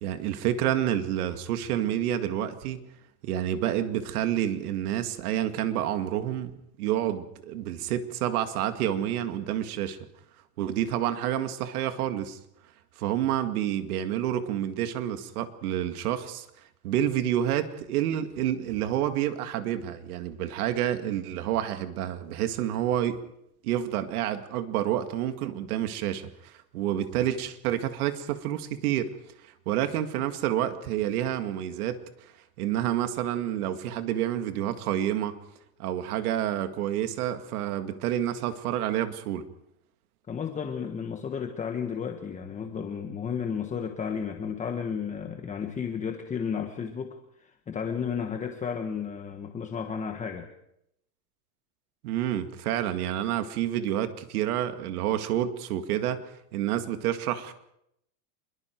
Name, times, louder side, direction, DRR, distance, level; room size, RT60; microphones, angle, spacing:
voice 1, 0.0-2.9 3.2-6.5 6.8-10.0 10.6-12.4 13.0-16.5 16.8-23.2 23.6-29.1 29.4-32.3 32.6-35.4 35.8-39.5 52.0-57.5, right 11 dB, 75° right, 2.2 m, -29 dB
voice 2, 40.3-50.5, left 7 dB, 15° left, 1.4 m, -33 dB
26.5 x 22.0 x 4.6 m
supercardioid pair, 150°, 44 cm